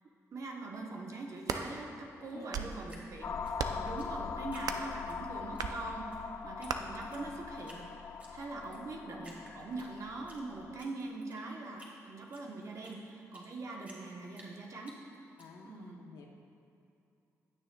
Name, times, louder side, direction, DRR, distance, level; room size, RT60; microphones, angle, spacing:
voice 1, 0.3-8.0 8.3-15.0 15.6-16.0, right 2 dB, 55° right, 0 dB, 1.1 m, -43 dB
sound 1, 1.2-1.7 2.3-2.8 3.5-3.9 4.6-4.9 5.6-5.8 6.7-6.8, right 7 dB, 80° right, 0.5 m, -36 dB
voice 2, 2.3-2.6 15.4-16.3, left 4 dB, 90° left, 1 dB, 0.9 m, -51 dB
Drip, 2.9-5.2 5.5-6.2 6.6-6.7 7.0-7.8 8.2-8.8 9.2-10.4 10.7-13.5 13.8-15.5, right 1 dB, 25° right, 2.0 m, -55 dB
sound 2, 3.2-10.8, left 6 dB, 50° left, 0.3 m, -42 dB
16.5 x 6.4 x 2.3 m, 2.8 s
cardioid pair, 70°, 6 cm